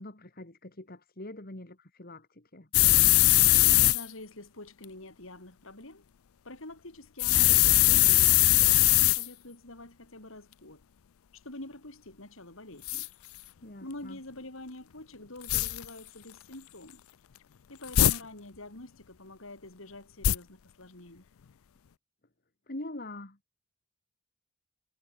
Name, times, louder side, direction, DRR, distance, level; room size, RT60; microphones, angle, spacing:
voice 1, 0.0-2.7 13.6-14.2 22.7-23.4, left 1 dB, 45° left, 2.4 m, -43 dB
sound 1, 2.7-4.0 7.2-9.3 12.9-13.1 15.5-15.8 17.9-18.2 20.2-20.3, left 16 dB, 90° left, 0.5 m, -21 dB
voice 2, 3.8-6.1 6.4-10.9 11.3-13.1 13.8-17.0 17.7-21.3, left 2 dB, 70° left, 4.3 m, -46 dB
head